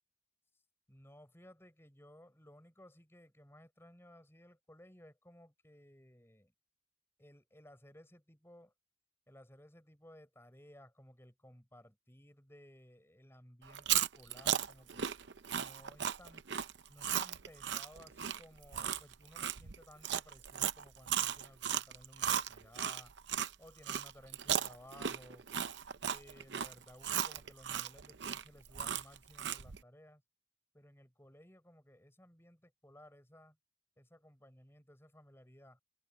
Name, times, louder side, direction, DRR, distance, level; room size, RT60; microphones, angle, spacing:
voice 1, 0.9-6.5 7.2-8.7 9.3-15.1 15.5-16.5 16.9-23.1 23.6-25.5 26.0-30.2 30.7-33.6 34.0-35.8, left 1 dB, 15° left, 4.9 m, -58 dB
Chewing mastication, 13.7-23.5 23.9-29.8, right 9 dB, 70° right, 0.7 m, -36 dB
head